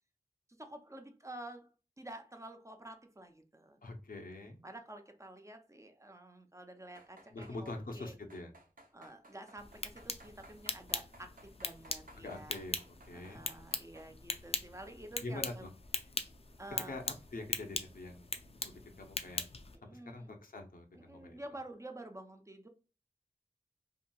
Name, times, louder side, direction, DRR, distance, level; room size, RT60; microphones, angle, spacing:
voice 1, 0.6-1.7 2.0-3.8 4.6-8.1 8.9-12.6 13.1-15.7 16.6-17.0 19.9-20.3 20.9-22.7, right 1 dB, 20° right, 0.5 m, -50 dB
voice 2, 3.8-4.6 7.3-8.5 12.2-12.8 13.1-13.4 15.2-15.7 16.9-17.0 17.3-18.2 18.6-19.4 19.8-21.4, left 2 dB, 90° left, 0.6 m, -44 dB
sound 1, 6.9-7.8 8.3-14.1 14.5-14.9 15.3-15.4, right 1 dB, 80° right, 0.6 m, -59 dB
sound 2, 9.6-19.8, left 4 dB, 45° left, 0.4 m, -41 dB
2.8 x 2.6 x 2.2 m
wide cardioid pair, 65°, 14 cm